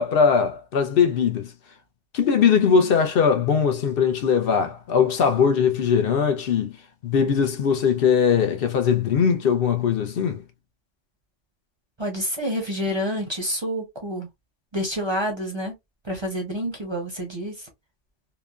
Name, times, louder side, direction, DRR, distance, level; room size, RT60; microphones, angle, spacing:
voice 1, 0.0-1.5 2.1-6.8 7.0-10.4, left 6 dB, 60° left, 0.7 m, -20 dB
voice 2, 12.0-14.3 14.7-15.7 16.0-17.7, equal, 30° right, 0.6 m, -28 dB
2.9 x 2.2 x 2.3 m
omnidirectional pair, 1.3 m